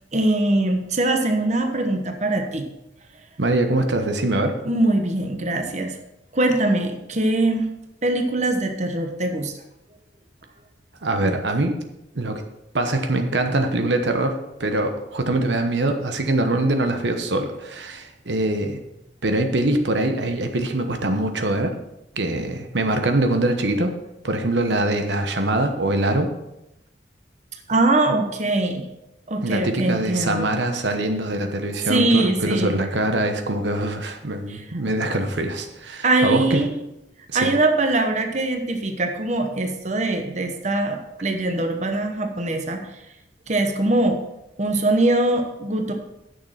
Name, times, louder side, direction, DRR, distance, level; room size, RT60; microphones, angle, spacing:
voice 1, 0.1-2.7 4.6-6.0 6.3-7.7 8.0-9.5 27.7-28.8 29.3-30.5 31.9-32.8 34.5-34.6 36.0-36.7 37.3-42.9 43.5-44.2 44.6-45.9, right 2 dB, 40° right, 5 dB, 1.1 m, -22 dB
voice 2, 3.4-4.6 11.0-11.8 12.1-12.4 12.7-18.8 19.2-21.7 22.1-23.9 24.2-26.3 29.4-36.6 37.3-37.5, right 2 dB, 80° right, 6 dB, 1.0 m, -23 dB
9.5 x 6.6 x 5.8 m, 0.88 s
head